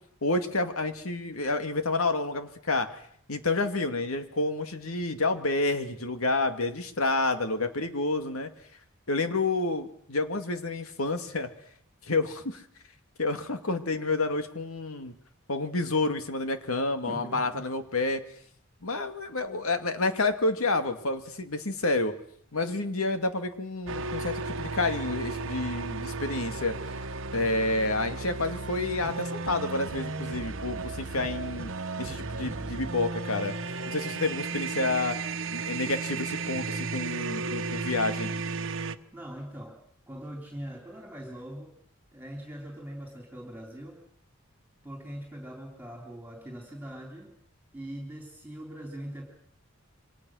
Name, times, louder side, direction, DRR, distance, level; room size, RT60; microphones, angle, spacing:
voice 1, 0.2-3.0 3.3-8.5 9.1-11.5 12.0-12.6 13.2-15.1 15.5-18.2 18.8-22.1 22.5-26.8 27.3-31.7 32.0-33.5 33.9-35.2 35.5-38.3, left 2 dB, 90° left, 8 dB, 2.2 m, -29 dB
voice 2, 17.1-17.6 39.1-39.8 40.1-41.7 42.1-44.0 44.8-47.3 47.7-49.2, right 1 dB, 10° right, 2 dB, 3.7 m, -41 dB
sound 1, 23.9-38.9, right 3 dB, 65° right, 1.2 m, -34 dB
28.0 x 24.5 x 6.4 m, 0.66 s
head